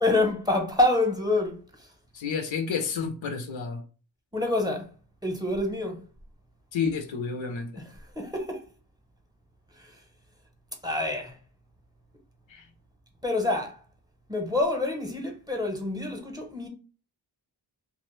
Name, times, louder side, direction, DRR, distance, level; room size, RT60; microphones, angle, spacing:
voice 1, 0.0-1.6 4.3-4.9 5.2-6.0 7.8-8.6 9.8-9.9 10.8-11.3 13.2-13.8 14.3-16.7, left 2 dB, 10° right, 0.7 m, -27 dB
voice 2, 2.1-3.8 6.7-7.8 12.5-12.6, left 5 dB, 85° left, 0.6 m, -30 dB
2.5 x 2.1 x 3.0 m
cardioid pair, 50°, 46 cm